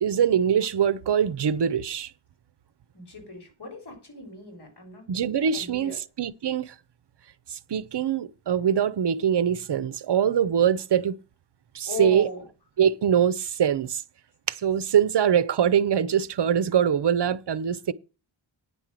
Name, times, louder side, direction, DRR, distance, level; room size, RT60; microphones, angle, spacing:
voice 1, 0.0-2.1 5.1-6.7 7.5-11.1 11.7-12.3 12.8-14.0 14.5-17.9, right 8 dB, 60° right, 0.7 m, -23 dB
voice 2, 2.9-5.0 5.5-6.0 11.9-12.5, left 5 dB, 55° left, 3.9 m, -37 dB
9.7 x 5.4 x 7.5 m
wide cardioid pair, 130°, 47 cm